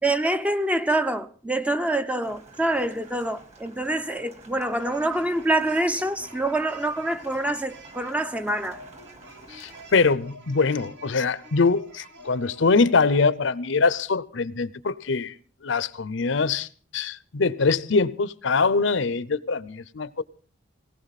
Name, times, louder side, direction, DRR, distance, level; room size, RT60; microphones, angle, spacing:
voice 1, 0.0-8.8, right 1 dB, 5° right, 0.7 m, -26 dB
Rain, 2.2-10.1, right 2 dB, 35° right, 3.2 m, -50 dB
sound 1, 4.8-12.9, right 1 dB, 65° right, 2.3 m, -47 dB
voice 2, 9.5-15.3 15.6-16.7 16.9-20.2, left 4 dB, 65° left, 0.7 m, -23 dB
18.5 x 18.0 x 4.1 m
head